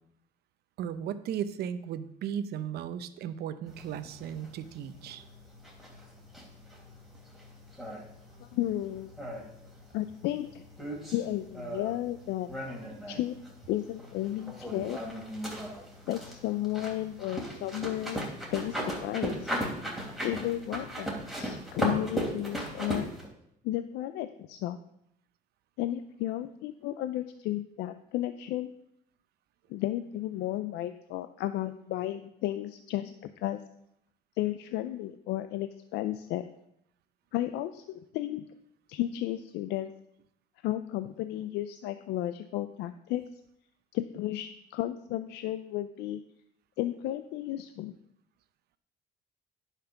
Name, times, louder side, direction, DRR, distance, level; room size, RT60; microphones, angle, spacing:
voice 1, 0.8-5.2, right 9 dB, 70° right, 12 dB, 0.8 m, -36 dB
sound 1, 3.7-23.3, equal, ahead, 3.0 m, -38 dB
voice 2, 8.4-9.1 9.9-10.6 11.1-12.5 13.1-13.4 13.7-15.0 16.1-18.2 18.5-19.5 20.2-23.1 23.6-24.8 25.8-28.7 29.7-33.1 33.4-33.6 34.4-36.4 37.3-38.4 38.9-39.9 40.6-43.4 43.9-46.2 46.8-47.9, left 14 dB, 85° left, 11 dB, 0.5 m, -33 dB
10.0 x 5.9 x 5.8 m, 0.76 s
cardioid pair, 110°, 17 cm